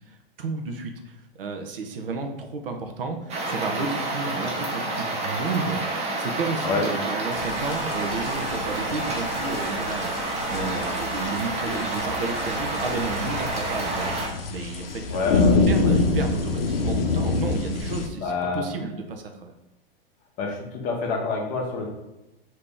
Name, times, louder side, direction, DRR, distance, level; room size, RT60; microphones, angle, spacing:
voice 1, 0.1-10.1 10.5-14.1 14.5-19.5, right 4 dB, 70° right, 4 dB, 0.6 m, -32 dB
sound 1, 3.3-14.3, right 2 dB, 20° right, 0.7 m, -29 dB
sound 2, 7.3-18.1, left 3 dB, 70° left, 0.6 m, -27 dB
voice 2, 15.1-15.9 18.2-18.7 20.4-21.9, left 4 dB, 30° left, 1 dB, 0.7 m, -27 dB
2.8 x 2.7 x 3.7 m, 0.95 s
figure-of-eight pair, 100°, 30 cm